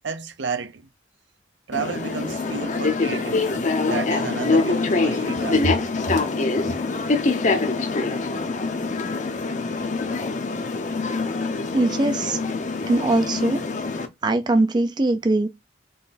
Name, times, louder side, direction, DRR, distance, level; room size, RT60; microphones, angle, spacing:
voice 1, 0.0-0.9 1.7-6.2 6.6-6.8, right 4 dB, 70° right, 0.6 m, -31 dB
sound 1, 1.7-14.1, left 3 dB, 40° left, 0.6 m, -24 dB
voice 2, 11.7-12.4 12.9-13.6 14.2-15.5, right 2 dB, 25° right, 0.3 m, -21 dB
4.0 x 3.2 x 4.1 m
head